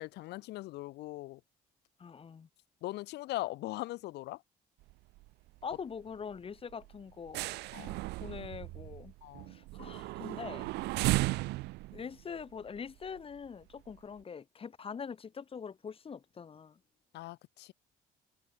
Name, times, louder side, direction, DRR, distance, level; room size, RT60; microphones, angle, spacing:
voice 1, 0.0-1.4 2.8-4.4 7.7-8.0 9.2-9.5 11.0-11.3 17.1-17.7, left 18 dB, 85° left, 3.5 m, -40 dB
voice 2, 2.0-2.5 5.6-7.5 8.2-9.1 9.5-10.7 11.9-16.8, left 6 dB, 35° left, 2.0 m, -43 dB
sound 1, 4.8-5.3 5.6-5.8 6.1-6.3 6.7-13.4 13.9-14.0, right 21 dB, 85° right, 0.5 m, -36 dB
open air
cardioid pair, 110°, 17 cm